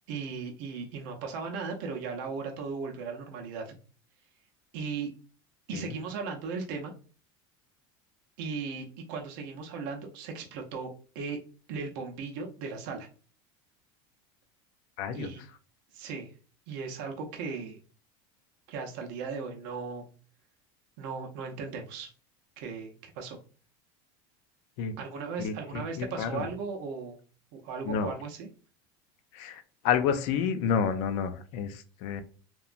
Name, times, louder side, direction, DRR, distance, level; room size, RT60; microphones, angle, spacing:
voice 1, 0.1-3.7 4.7-5.1 5.7-6.9 8.4-11.4 11.7-13.1 15.1-15.4 15.9-16.3 16.7-17.8 18.7-20.0 21.0-22.1 22.6-23.4 25.0-27.2 27.5-28.5, right 5 dB, 65° right, 0.6 m, -37 dB
voice 2, 15.0-15.3 24.8-24.9 25.4-26.5 27.9-28.1 29.3-32.2, left 7 dB, 60° left, 0.4 m, -30 dB
2.8 x 2.2 x 2.4 m
cardioid pair, 150°, 12 cm